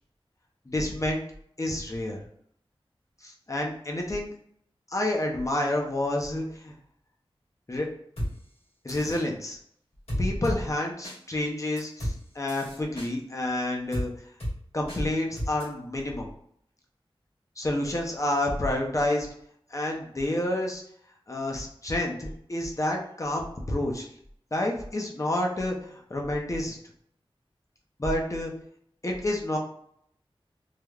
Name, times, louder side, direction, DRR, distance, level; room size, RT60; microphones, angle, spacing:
voice 1, 0.7-1.2 1.6-2.2 3.2-4.3 4.9-6.7 7.7-7.9 8.8-9.6 10.2-14.1 14.7-16.3 17.6-19.3 19.7-20.8 21.3-24.1 24.5-26.8 28.0-28.5 29.0-29.6, left 1 dB, 35° left, 0 dB, 0.6 m, -29 dB
sound 1, 8.2-8.3 8.9-9.2 10.1-10.6 11.0-11.2 11.8-12.2 12.5-13.1 13.9-14.1 14.4-14.5 14.9-15.0 15.4-15.6, equal, 85° left, 1.5 m, -32 dB
3.2 x 2.1 x 2.3 m, 0.68 s
wide cardioid pair, 60°, 10 cm